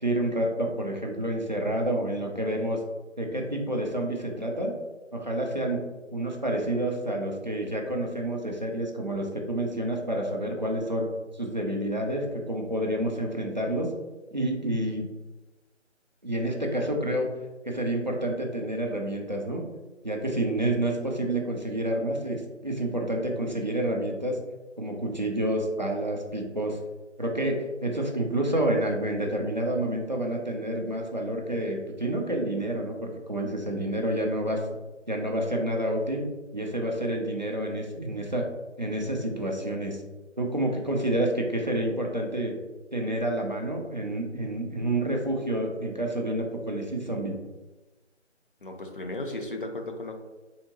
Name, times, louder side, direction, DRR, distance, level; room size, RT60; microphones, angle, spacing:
voice 1, 0.0-2.8 3.2-4.7 5.1-5.8 6.1-11.1 11.3-13.9 14.3-15.1 16.2-17.3 17.6-19.6 20.0-24.4 24.8-26.8 27.2-34.6 35.1-36.2 36.5-38.5 38.8-40.0 40.4-42.5 42.9-47.4, right 1 dB, 40° right, 0 dB, 0.4 m, -29 dB
voice 2, 48.6-50.2, left 2 dB, 45° left, 3 dB, 0.5 m, -35 dB
3.5 x 2.7 x 2.9 m, 1.1 s
figure-of-eight pair, 165°, 37 cm